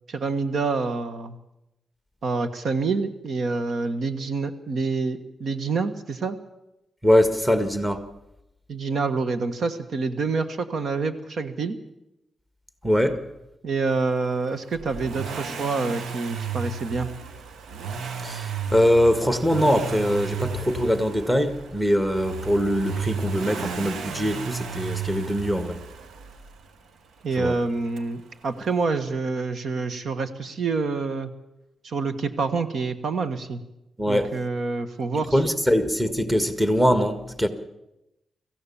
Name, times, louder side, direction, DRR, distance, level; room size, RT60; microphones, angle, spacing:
voice 1, 0.1-1.4 2.2-6.4 8.7-11.8 13.6-17.1 27.2-31.3 31.8-33.6 34.1-35.4, right 4 dB, 65° right, 1.4 m, -27 dB
voice 2, 7.0-8.0 12.8-13.2 18.2-25.8 27.4-27.5 34.0-34.3 35.3-37.5, equal, 5° right, 1.7 m, -22 dB
Accelerating revving vroom, 14.7-26.7 28.0-28.1, right 6 dB, 85° right, 1.2 m, -34 dB
25.0 x 15.0 x 7.2 m
cardioid pair, 110°, 0 cm